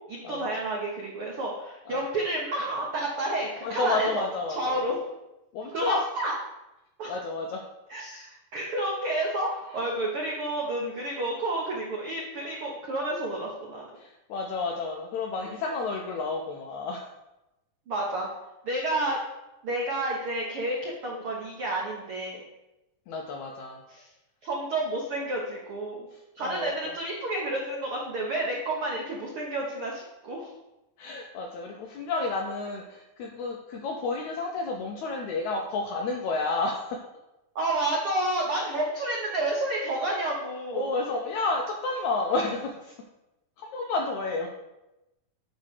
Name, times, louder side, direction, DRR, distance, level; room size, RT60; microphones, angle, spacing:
voice 1, 0.1-5.0 5.7-6.3 7.0-7.1 7.9-13.8 17.9-18.3 18.6-19.2 19.6-22.4 23.9-24.1 24.4-26.1 26.3-30.5 37.5-40.9, right 1 dB, 80° right, -3 dB, 1.2 m, -30 dB
voice 2, 3.6-4.8 5.5-6.0 7.1-7.6 14.0-17.1 23.1-23.8 26.1-27.0 31.0-37.0 38.5-38.8 40.7-42.9 43.6-44.5, left 3 dB, 80° left, 1 dB, 1.7 m, -31 dB
9.2 x 3.2 x 6.5 m, 0.95 s
omnidirectional pair, 4.1 m